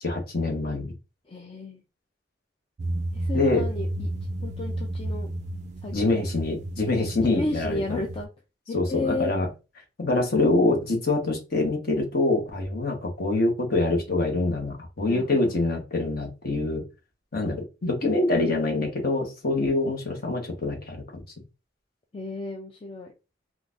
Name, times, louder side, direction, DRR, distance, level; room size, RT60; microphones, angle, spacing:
voice 1, 0.0-0.9 3.3-3.6 5.9-8.0 8.7-9.5 10.0-16.8 17.3-21.2, left 2 dB, 50° left, 2 dB, 1.0 m, -25 dB
voice 2, 1.3-1.8 3.1-4.1 4.4-5.3 5.8-6.0 7.2-8.3 8.7-9.3 15.0-15.5 22.1-23.1, left 3 dB, 30° left, 1 dB, 0.4 m, -32 dB
sound 1, 2.8-8.3, right 1 dB, 40° right, 0.3 m, -32 dB
3.8 x 2.3 x 2.4 m, 0.28 s
head